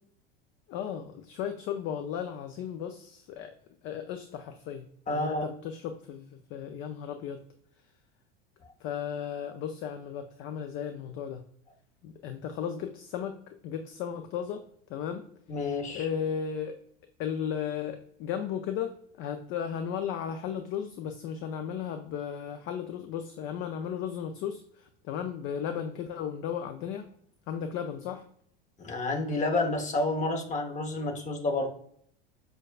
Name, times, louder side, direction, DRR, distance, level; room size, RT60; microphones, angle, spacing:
voice 1, 0.7-3.5 3.8-7.4 8.8-11.4 12.0-14.6 14.9-15.3 15.9-16.8 17.2-27.1 27.5-28.3, left 8 dB, 45° left, 7 dB, 0.4 m, -35 dB
voice 2, 5.1-5.5 15.5-16.1 28.8-31.7, left 2 dB, 25° left, 4 dB, 0.9 m, -29 dB
6.1 x 2.3 x 2.3 m, 0.64 s
hypercardioid pair, 95°, 29 cm